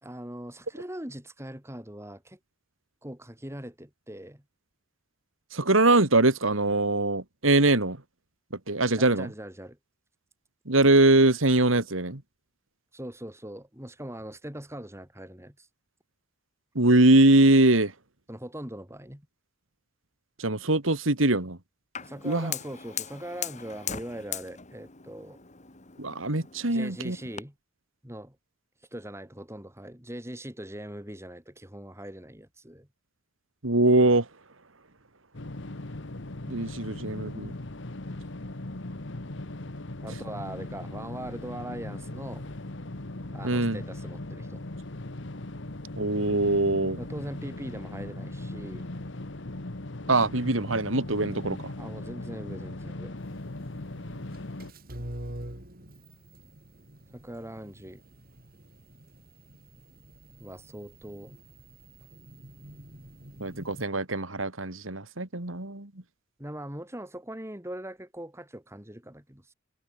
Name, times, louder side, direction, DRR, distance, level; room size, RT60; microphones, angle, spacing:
voice 1, 0.0-2.4 3.0-4.4 9.0-9.8 12.9-15.7 18.3-19.3 22.0-25.4 26.6-27.5 28.0-28.4 28.9-32.9 40.0-42.5 43.3-44.6 46.9-48.9 51.8-53.2 57.1-58.0 60.4-61.4 66.4-69.5, right 1 dB, 15° right, 4.6 m, -41 dB
voice 2, 5.5-8.0 8.5-9.3 10.7-12.2 16.7-17.9 20.4-21.6 22.2-22.5 26.0-27.2 33.6-34.3 36.5-37.5 43.4-43.8 46.0-47.0 50.1-51.7 63.4-65.9, right 2 dB, 85° right, 2.7 m, -22 dB
Fire, 21.9-27.4, left 8 dB, 35° left, 2.2 m, -39 dB
sound 1, 35.3-54.7, left 2 dB, 65° left, 1.5 m, -39 dB
sound 2, 53.2-63.8, right 1 dB, 50° right, 3.9 m, -46 dB
head